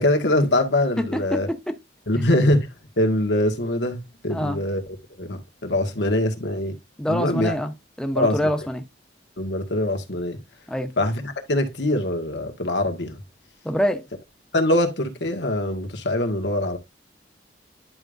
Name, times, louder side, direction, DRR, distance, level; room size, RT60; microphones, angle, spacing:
voice 1, 0.0-1.5 2.1-2.7 3.0-4.8 5.2-6.8 7.1-7.5 8.1-8.4 9.4-10.4 11.0-13.2 14.5-16.8, left 1 dB, 90° left, 1.6 m, -23 dB
voice 2, 1.1-1.6 4.3-4.6 7.0-8.8 10.7-10.9 13.6-14.0, equal, 5° left, 0.8 m, -25 dB
10.5 x 5.0 x 2.6 m
head